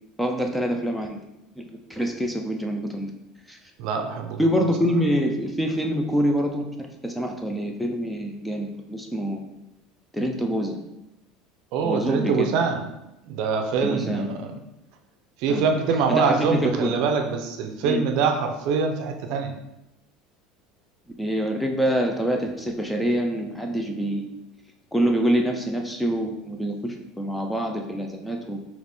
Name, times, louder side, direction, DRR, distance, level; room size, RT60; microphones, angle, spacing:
voice 1, 0.2-1.2 1.6-1.7 1.9-3.1 3.5-3.6 4.4-9.4 10.1-10.8 11.8-12.5 13.8-14.3 15.5-15.6 15.9-16.9 17.8-18.0 21.2-24.3 24.9-28.6, equal, 5° left, 3 dB, 0.3 m, -25 dB
voice 2, 3.8-4.5 11.7-12.9 13.2-14.5 15.4-19.5, right 5 dB, 55° right, 5 dB, 0.5 m, -24 dB
4.1 x 2.9 x 3.4 m, 0.90 s
cardioid pair, 165°, 0 cm